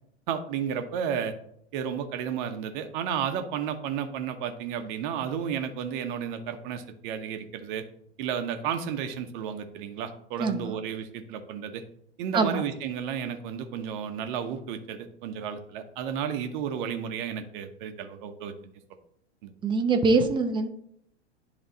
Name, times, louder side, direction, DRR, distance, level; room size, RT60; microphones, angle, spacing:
voice 1, 0.3-1.3 1.7-7.9 8.2-11.8 12.2-18.5 19.4-19.5, right 8 dB, 45° right, 7 dB, 1.1 m, -32 dB
voice 2, 10.4-10.8 12.3-12.6 19.6-20.7, right 3 dB, 15° right, 6 dB, 0.7 m, -24 dB
10.5 x 3.6 x 3.9 m, 0.70 s
figure-of-eight pair, 95°, 35 cm